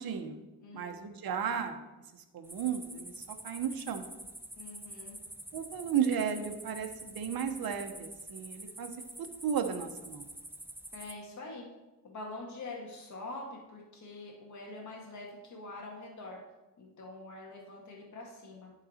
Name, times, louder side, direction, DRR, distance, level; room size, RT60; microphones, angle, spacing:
voice 1, 0.0-0.4 0.7-1.8 2.3-4.0 5.5-8.9 9.4-10.3, right 7 dB, 60° right, 6 dB, 1.0 m, -34 dB
voice 2, 0.6-1.0 4.6-5.2 10.9-11.7 12.0-16.4 16.8-18.7, left 2 dB, 45° left, -2 dB, 1.7 m, -45 dB
sound 1, 2.4-11.1, right 1 dB, 5° right, 0.6 m, -47 dB
10.5 x 4.0 x 4.3 m, 1.1 s
cardioid pair, 95°, 40 cm